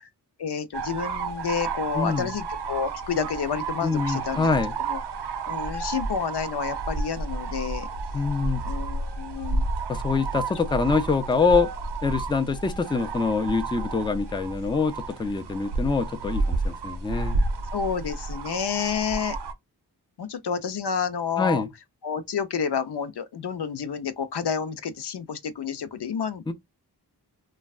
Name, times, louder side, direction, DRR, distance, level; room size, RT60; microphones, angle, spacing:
voice 1, 0.4-4.5 4.8-5.0 5.5-7.9 8.6-9.6 11.3-11.4 17.7-19.4 20.2-21.6 22.0-26.5, left 6 dB, 70° left, 0.5 m, -29 dB
sound 1, 0.7-19.5, right 3 dB, 75° right, 0.6 m, -31 dB
voice 2, 1.9-2.3 3.8-4.7 8.1-8.6 9.9-11.7 12.0-17.4 21.4-21.7 26.5-26.6, left 4 dB, 10° left, 0.4 m, -25 dB
3.2 x 2.2 x 2.3 m
cardioid pair, 40°, 41 cm